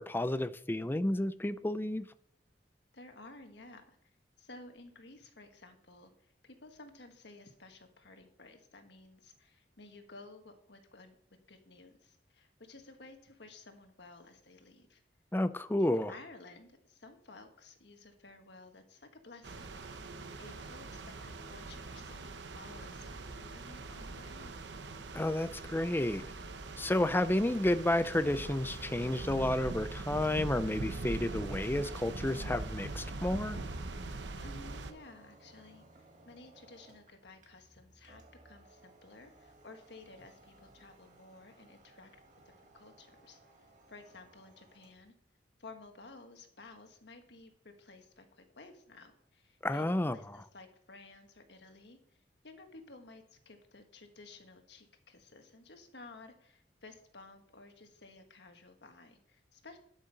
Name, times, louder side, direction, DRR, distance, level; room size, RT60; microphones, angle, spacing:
voice 1, 0.0-2.1 15.3-16.1 25.1-26.2 26.8-33.6 49.6-50.2, left 1 dB, 10° left, 0.5 m, -31 dB
voice 2, 2.9-4.0 4.4-11.2 11.5-15.0 15.8-24.6 34.4-35.8 36.2-42.1 42.4-43.4 43.9-45.1 45.6-52.0 52.4-59.8, left 3 dB, 70° left, 1.6 m, -54 dB
sound 1, 19.4-34.9, right 2 dB, 80° right, 0.8 m, -42 dB
sound 2, 26.9-45.1, right 2 dB, 45° right, 1.9 m, -60 dB
11.5 x 6.3 x 5.4 m
head